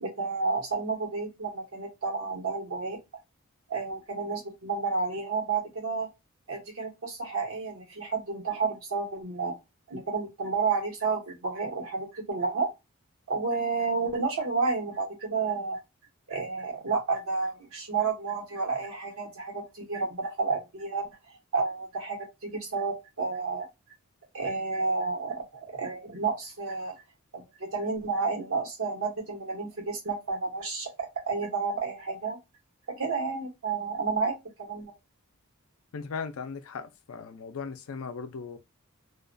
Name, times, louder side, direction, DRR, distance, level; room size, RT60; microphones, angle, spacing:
voice 1, 0.0-3.0 3.7-6.1 6.5-9.6 9.9-12.7 13.3-15.8 16.3-21.1 21.5-23.7 24.3-26.9 27.3-32.4 32.9-34.9, right 4 dB, 75° right, 1.1 m, -31 dB
voice 2, 35.9-38.6, left 5 dB, 75° left, 0.4 m, -38 dB
2.4 x 2.2 x 2.5 m
head